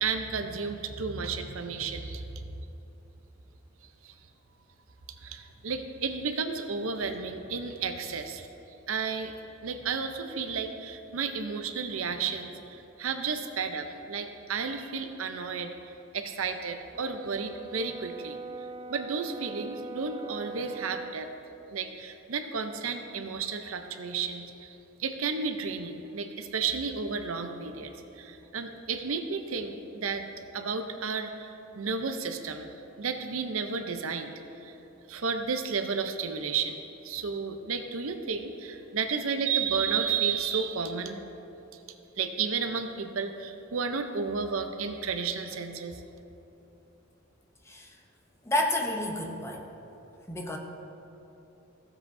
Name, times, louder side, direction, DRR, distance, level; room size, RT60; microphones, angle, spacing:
voice 1, 0.0-2.3 4.0-4.1 5.2-8.5 8.9-9.3 9.6-15.7 16.1-18.4 18.9-21.3 21.7-30.3 30.5-34.3 34.6-34.7 35.1-41.2 42.2-46.0, right 5 dB, 90° right, 7 dB, 0.7 m, -32 dB
Brass instrument, 16.9-21.2, right 4 dB, 25° right, 0.4 m, -41 dB
voice 2, 47.6-48.0 48.4-49.6 50.3-50.6, left 1 dB, 15° left, 1 dB, 0.7 m, -30 dB
15.5 x 7.5 x 2.7 m, 2.9 s
head